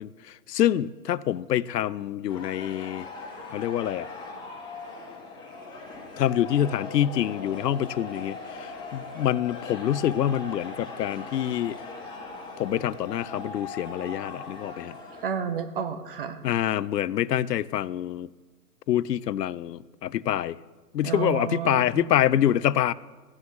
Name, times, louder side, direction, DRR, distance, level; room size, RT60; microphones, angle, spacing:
voice 1, 0.0-3.1 3.5-4.1 6.2-11.8 12.6-15.0 16.4-18.3 18.9-20.6 20.9-22.9, left 11 dB, 75° left, 19 dB, 0.6 m, -26 dB
sound 1, 2.3-15.3, left 3 dB, 10° left, 1.4 m, -40 dB
voice 2, 15.2-16.4 21.0-22.1, right 7 dB, 35° right, 10 dB, 0.7 m, -31 dB
16.0 x 9.7 x 3.2 m, 1.3 s
hypercardioid pair, 145°, 49 cm